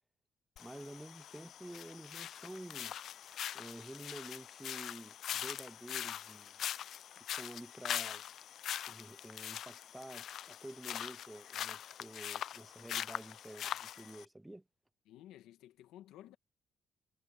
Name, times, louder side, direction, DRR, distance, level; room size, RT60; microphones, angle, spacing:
sound 1, 0.6-14.2, left 10 dB, 70° left, 0.4 m, -42 dB
voice 1, 0.6-2.9 3.5-6.6 7.2-8.2 8.9-14.6, right 1 dB, 10° right, 0.4 m, -50 dB
voice 2, 15.1-16.4, left 13 dB, 90° left, 1.8 m, -54 dB
cardioid pair, 75°, 0 cm